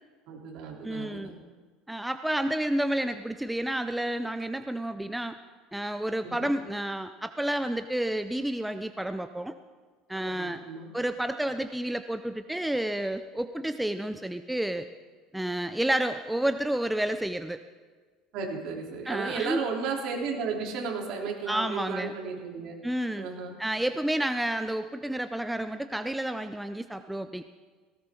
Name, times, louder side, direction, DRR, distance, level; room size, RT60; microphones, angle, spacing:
voice 1, 0.3-1.4 6.2-6.5 10.1-10.9 18.3-22.7 23.2-23.6, right 5 dB, 60° right, -1 dB, 3.4 m, -34 dB
voice 2, 0.8-1.3 1.9-5.4 5.7-9.5 10.1-10.6 10.9-14.9 15.3-17.6 19.1-19.6 21.5-22.1 22.8-23.3 23.6-27.4, right 1 dB, 5° right, 9 dB, 0.4 m, -30 dB
18.0 x 18.0 x 3.8 m, 1.4 s
cardioid pair, 150°, 0 cm